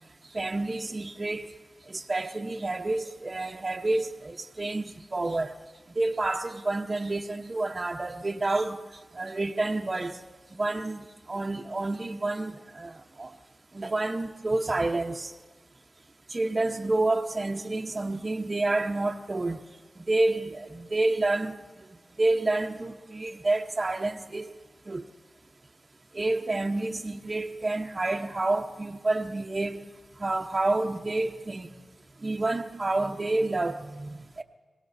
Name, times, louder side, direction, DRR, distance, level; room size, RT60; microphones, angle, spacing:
voice 1, 0.3-1.5 1.9-5.5 6.0-8.8 9.1-10.2 10.5-13.3 13.7-15.3 16.3-19.6 20.1-21.6 22.2-24.5 24.9-25.0 26.1-29.9 30.2-31.7 32.2-34.4, right 2 dB, 40° right, 0.9 m, -29 dB
29.5 x 17.5 x 2.7 m
cardioid pair, 50°, 0 cm